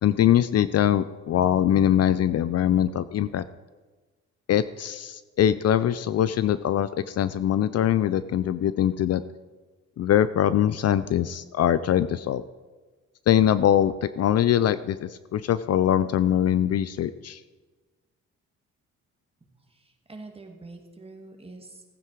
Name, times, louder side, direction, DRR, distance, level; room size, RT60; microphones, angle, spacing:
voice 1, 0.0-3.4 4.5-9.2 10.0-12.4 13.3-17.4, left 10 dB, 55° left, 15 dB, 0.5 m, -22 dB
voice 2, 19.4-21.8, right 3 dB, 20° right, 3 dB, 2.2 m, -45 dB
15.5 x 9.2 x 4.7 m, 1.3 s
cardioid pair, 90°, 30 cm